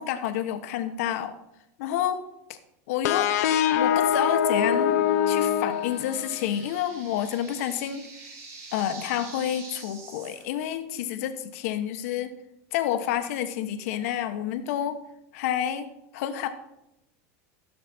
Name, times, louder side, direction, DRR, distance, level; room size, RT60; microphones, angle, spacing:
voice 1, 0.0-1.4 1.8-2.6 2.9-3.3 3.7-8.1 8.7-12.3 12.7-15.0 15.3-16.5, left 10 dB, 70° left, 8 dB, 1.2 m, -29 dB
sound 1, 3.0-6.6, left 9 dB, 90° left, 0.8 m, -24 dB
sound 2, 4.6-10.4, right 4 dB, 40° right, 3.4 m, -46 dB
15.0 x 6.8 x 4.4 m, 0.85 s
supercardioid pair, 145°, 8 cm